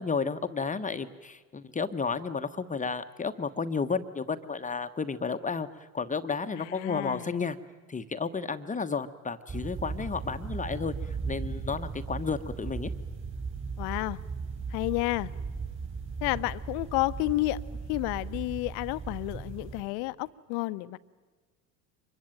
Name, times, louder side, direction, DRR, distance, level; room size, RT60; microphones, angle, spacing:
voice 1, 0.0-7.6 7.9-12.9, left 5 dB, 20° left, 10 dB, 1.1 m, -32 dB
voice 2, 6.5-7.3 13.8-14.2 14.7-15.3 16.2-17.6 17.9-21.0, left 20 dB, 60° left, 16 dB, 0.9 m, -31 dB
sound 1, 9.5-19.8, right 5 dB, 30° right, 5.2 m, -37 dB
24.5 x 22.0 x 9.1 m, 1.4 s
hypercardioid pair, 80°, 43 cm